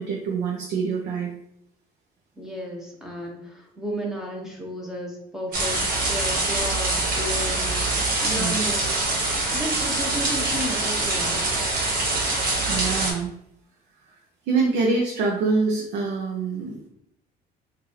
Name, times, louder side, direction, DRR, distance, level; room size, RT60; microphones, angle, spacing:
voice 1, 0.0-1.3 8.4-8.5 12.7-13.3 14.1-14.2 14.4-16.9, right 4 dB, 75° right, -1 dB, 0.7 m, -25 dB
voice 2, 2.4-9.0 9.5-11.6, equal, 5° right, -1 dB, 1.0 m, -33 dB
sound 1, 5.5-13.1, right 2 dB, 55° right, 1.5 m, -24 dB
4.0 x 2.6 x 3.1 m, 0.74 s
cardioid pair, 110°, 17 cm